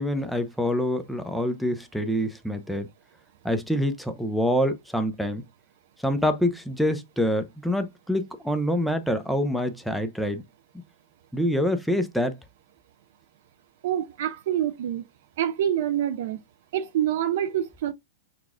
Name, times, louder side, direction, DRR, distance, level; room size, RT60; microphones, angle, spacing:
voice 1, 0.0-2.9 3.4-5.4 6.0-10.4 11.3-12.4, equal, ahead, 0.6 m, -26 dB
voice 2, 13.8-15.0 15.4-16.4 16.7-17.9, right 10 dB, 65° right, 0.3 m, -26 dB
5.9 x 2.3 x 2.3 m
hypercardioid pair, 125°, 0 cm